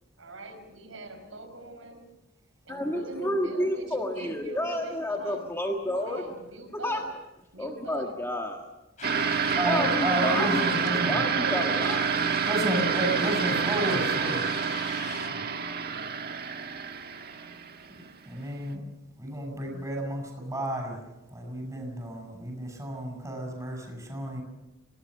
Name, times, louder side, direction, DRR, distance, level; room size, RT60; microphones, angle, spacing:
voice 1, 0.2-2.0 2.7-5.5 5.9-7.0 7.5-8.1 9.6-10.1 10.6-12.0, right 1 dB, 80° right, 5 dB, 5.3 m, -42 dB
voice 2, 2.7-6.3 6.7-7.0 7.6-8.7 9.6-10.6 11.0-12.1, left 1 dB, 15° left, 2 dB, 1.7 m, -30 dB
sound 1, 9.0-15.3, left 4 dB, 40° left, 3.2 m, -42 dB
sound 2, 9.0-18.1, right 6 dB, 50° right, 1.5 m, -28 dB
voice 3, 9.6-11.2 12.4-14.6 15.3-15.4 18.2-18.9 19.2-21.0 21.3-24.4, right 1 dB, 15° right, 2 dB, 7.2 m, -31 dB
27.5 x 18.0 x 6.6 m, 0.97 s
head